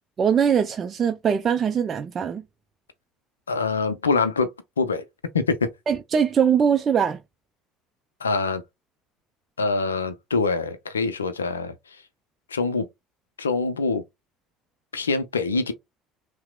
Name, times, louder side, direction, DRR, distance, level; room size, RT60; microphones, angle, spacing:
voice 1, 0.2-2.4 5.9-7.2, right 7 dB, 35° right, 0.4 m, -21 dB
voice 2, 3.5-4.5 4.8-5.0 5.3-5.7 8.2-8.6 9.6-11.7 12.5-12.9 13.4-14.0 14.9-15.7, left 4 dB, 80° left, 0.4 m, -24 dB
5.6 x 2.0 x 2.2 m
figure-of-eight pair, 60°, 0 cm